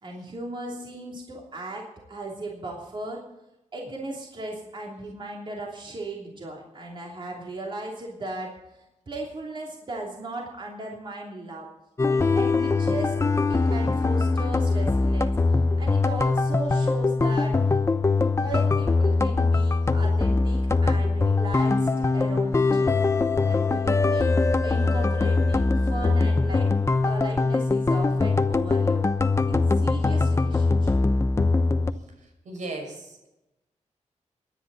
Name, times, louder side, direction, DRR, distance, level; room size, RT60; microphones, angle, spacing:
voice 1, 0.0-3.2 3.7-8.5 9.1-11.7 12.1-13.2 13.5-15.3 15.8-17.6 18.3-23.0 23.5-26.7 27.1-29.0 29.5-30.9, right 2 dB, 40° right, -2 dB, 3.1 m, -36 dB
sound 1, 12.0-31.9, left 3 dB, 20° left, 0.8 m, -22 dB
voice 2, 32.4-33.3, right 2 dB, 85° right, 2 dB, 5.9 m, -36 dB
24.0 x 10.5 x 4.1 m, 0.91 s
wide cardioid pair, 120°, 12 cm